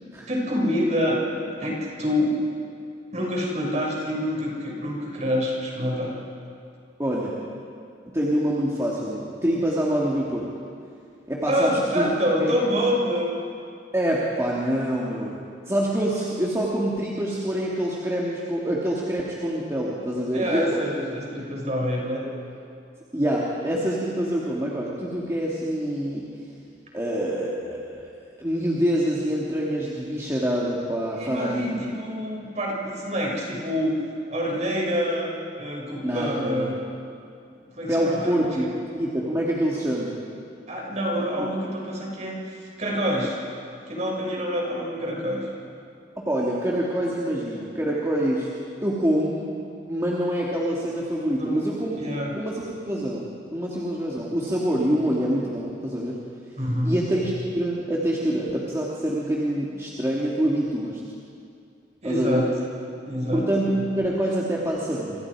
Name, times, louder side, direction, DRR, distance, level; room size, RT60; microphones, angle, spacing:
voice 1, 0.3-1.3 1.6-2.4 3.1-6.1 11.5-13.3 20.3-22.2 31.2-34.0 34.3-35.3 35.6-36.8 37.7-38.7 40.7-43.4 43.9-45.4 51.3-51.7 52.0-52.3 56.6-57.0 62.0-62.5 63.1-63.5, equal, 40° right, -2 dB, 6.2 m, -26 dB
voice 2, 7.0-7.4 8.1-10.5 11.3-12.1 12.4-12.5 13.9-20.8 23.1-26.3 26.9-28.0 28.4-31.7 36.0-36.8 37.9-38.7 39.0-40.1 46.2-48.5 48.8-49.5 49.9-52.0 52.3-56.1 56.8-61.0 62.0-62.4 63.3-65.3, right 1 dB, 15° right, -5 dB, 2.4 m, -26 dB
28.5 x 26.0 x 5.0 m, 2.4 s
head